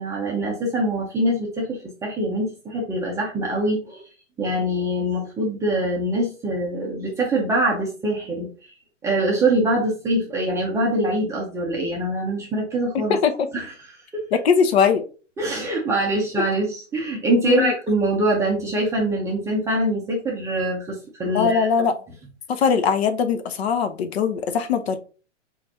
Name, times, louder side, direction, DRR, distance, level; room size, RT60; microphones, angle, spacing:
voice 1, 0.0-4.0 4.4-8.5 9.0-13.2 13.5-14.3 15.4-21.7, right 1 dB, 10° right, 0.5 m, -24 dB
voice 2, 14.3-15.0 17.4-17.7 21.3-21.9 22.5-25.0, left 6 dB, 55° left, 0.7 m, -20 dB
5.7 x 2.5 x 2.7 m
hypercardioid pair, 130°, 37 cm